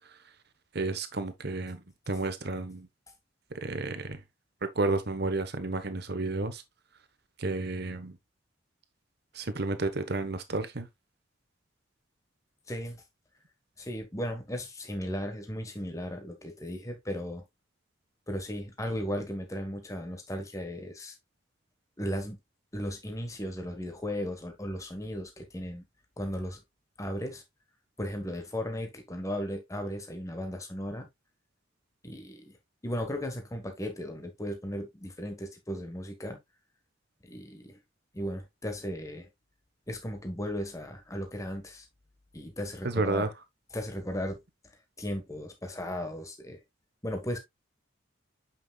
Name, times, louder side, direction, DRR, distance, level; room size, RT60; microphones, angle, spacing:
voice 1, 0.7-2.9 3.6-4.2 4.6-6.6 7.4-8.2 9.3-10.9 42.8-43.3, right 2 dB, 55° right, 1.2 m, -31 dB
voice 2, 12.7-13.0 13.8-17.4 18.3-21.2 22.0-22.4 22.7-25.8 26.2-26.6 27.0-27.4 28.0-31.1 32.0-32.6 32.8-36.4 37.3-37.8 38.1-39.3 39.9-41.8 42.3-43.3 43.7-44.4 45.0-46.6 47.0-47.4, equal, 15° left, 1.4 m, -36 dB
8.3 x 5.8 x 2.4 m
head